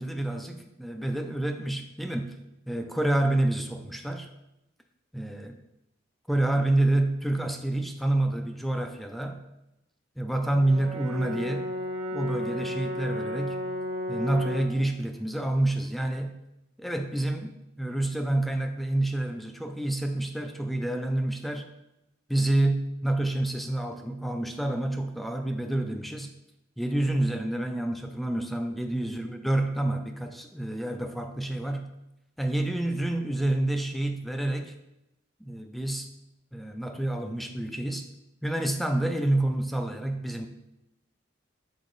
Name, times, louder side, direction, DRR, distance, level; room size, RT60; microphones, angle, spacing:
voice 1, 0.0-2.4 2.7-4.3 5.1-5.5 6.3-9.4 10.2-11.7 12.1-13.6 14.1-16.4 16.8-21.7 22.3-26.3 26.8-31.9 32.4-34.7 35.4-36.1 36.5-38.1 38.4-40.5, right 1 dB, ahead, 5 dB, 0.4 m, -28 dB
Brass instrument, 10.5-14.8, left 1 dB, 30° right, 1.0 m, -33 dB
6.5 x 4.6 x 3.9 m, 0.88 s
head